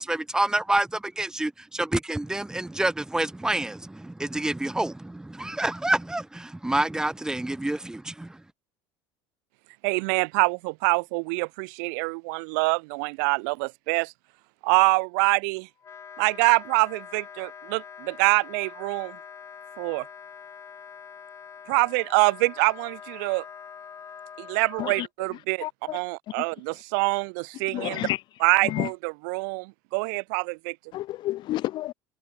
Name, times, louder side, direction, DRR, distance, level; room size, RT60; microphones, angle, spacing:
voice 1, 0.0-8.4, right 1 dB, 5° right, 5.1 m, -28 dB
voice 2, 9.8-14.1 14.6-15.7 16.2-19.2 19.8-20.0 21.7-23.4 24.4-25.7 25.9-28.1 28.4-30.7, right 33 dB, 80° right, 3.1 m, -25 dB
Wind instrument woodwind instrument, 15.8-25.1, left 7 dB, 30° left, 6.8 m, -44 dB
voice 3, 25.6-26.0 27.7-28.2 28.7-28.9 30.9-31.9, left 15 dB, 50° left, 0.6 m, -29 dB
supercardioid pair, 125°, 10 cm